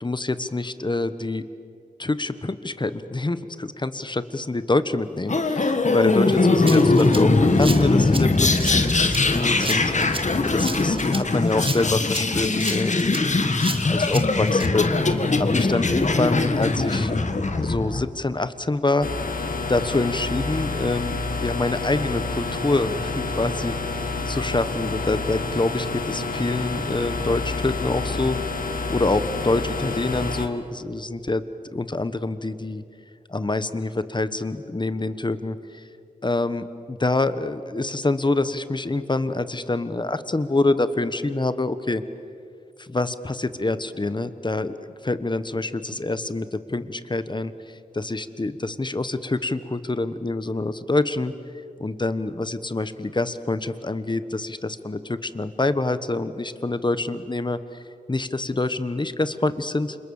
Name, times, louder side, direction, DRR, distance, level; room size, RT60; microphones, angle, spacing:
voice 1, 0.0-1.4 2.0-9.8 10.4-13.5 13.8-17.1 17.6-21.1 21.4-28.4 28.9-31.4 31.7-32.8 33.3-35.9 36.2-42.0 42.8-44.7 45.0-51.3 51.8-57.8 58.1-60.0, left 2 dB, 30° left, 12 dB, 1.3 m, -26 dB
sound 1, 5.3-18.0, left 3 dB, 55° left, 1.9 m, -21 dB
Rattle (instrument), 6.7-14.7, right 2 dB, 40° right, 1.8 m, -34 dB
sound 2, 19.0-30.5, left 3 dB, 75° left, 2.3 m, -29 dB
29.5 x 26.5 x 7.2 m, 2.5 s
wide cardioid pair, 80°, 14 cm